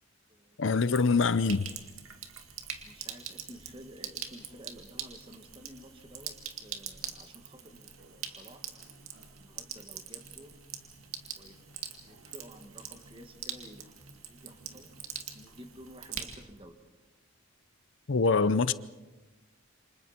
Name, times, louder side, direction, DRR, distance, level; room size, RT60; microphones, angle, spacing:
voice 1, 0.6-1.7 18.1-18.7, left 4 dB, 60° left, 0.6 m, -24 dB
Sink (filling or washing), 0.7-16.6, right 8 dB, 90° right, 2.1 m, -44 dB
voice 2, 2.8-8.7 9.4-10.6 11.0-11.6 12.0-14.9 15.3-16.8 18.2-18.7, equal, 25° right, 2.1 m, -52 dB
28.5 x 26.0 x 4.5 m
head